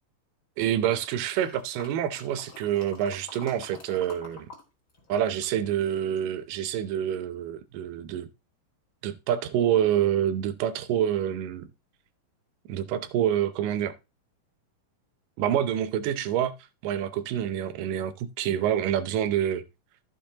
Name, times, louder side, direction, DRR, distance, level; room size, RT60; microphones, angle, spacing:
voice 1, 0.6-4.5 5.1-8.3 9.0-11.7 12.7-13.9 15.4-16.5 16.8-19.6, right 10 dB, 85° right, 2.4 m, -27 dB
sound 1, 1.4-4.6 4.9-6.4 6.9-7.0, left 3 dB, 25° left, 2.2 m, -47 dB
14.0 x 6.8 x 2.8 m
omnidirectional pair, 3.8 m